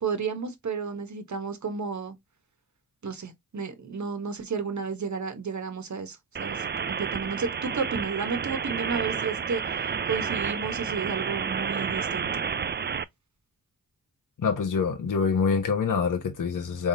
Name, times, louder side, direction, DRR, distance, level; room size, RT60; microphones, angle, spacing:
voice 1, 0.0-2.2 3.0-12.4, right 5 dB, 55° right, 1.3 m, -32 dB
sound 1, 6.4-13.0, right 6 dB, 30° right, 0.4 m, -30 dB
voice 2, 14.4-16.9, left 5 dB, 60° left, 1.2 m, -25 dB
3.8 x 3.5 x 2.7 m
supercardioid pair, 40°, 35 cm